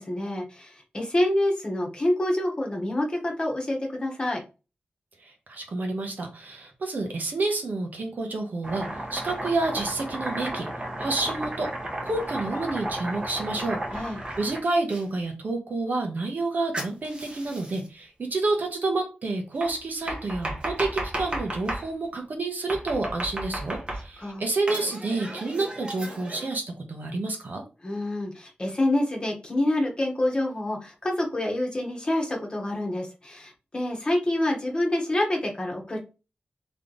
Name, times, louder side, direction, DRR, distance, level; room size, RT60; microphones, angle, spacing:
voice 1, 0.0-4.4 13.9-14.2 24.2-24.4 27.8-36.0, left 1 dB, 30° left, 0 dB, 1.1 m, -27 dB
voice 2, 5.2-10.7 11.0-11.7 12.0-27.6, right 3 dB, 60° right, 3 dB, 1.1 m, -29 dB
Domestic sounds home sounds, 8.6-15.0 16.7-17.9 19.6-21.9 22.7-24.3 24.7-26.5, right 1 dB, 30° right, 1.0 m, -34 dB
3.5 x 3.2 x 3.9 m, 0.32 s
wide cardioid pair, 140°, 3 cm